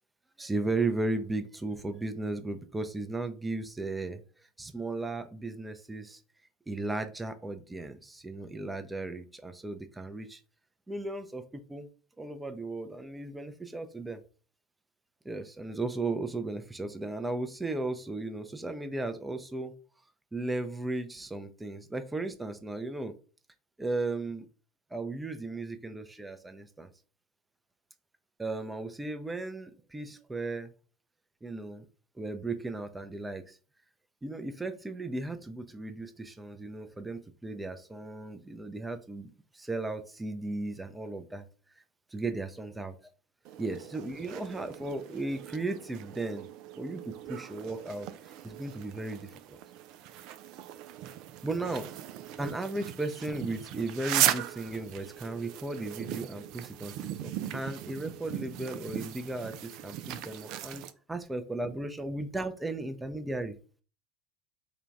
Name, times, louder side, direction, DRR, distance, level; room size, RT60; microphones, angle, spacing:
voice 1, 0.4-4.2 4.6-6.2 6.7-10.4 10.9-11.9 12.2-14.2 15.2-19.7 20.3-23.1 23.8-24.5 24.9-26.9 28.4-30.7 31.4-31.9 32.2-33.6 34.2-41.5 42.1-42.9 43.6-46.5 46.8-48.1 48.4-49.6 51.4-51.9 52.4-56.9 57.2-60.8 61.1-63.6, right 2 dB, 10° right, 8 dB, 0.6 m, -35 dB
sound 1, 43.5-60.9, right 12 dB, 55° right, 0.3 m, -37 dB
3.8 x 2.3 x 3.3 m, 0.38 s
figure-of-eight pair, 70°, 0 cm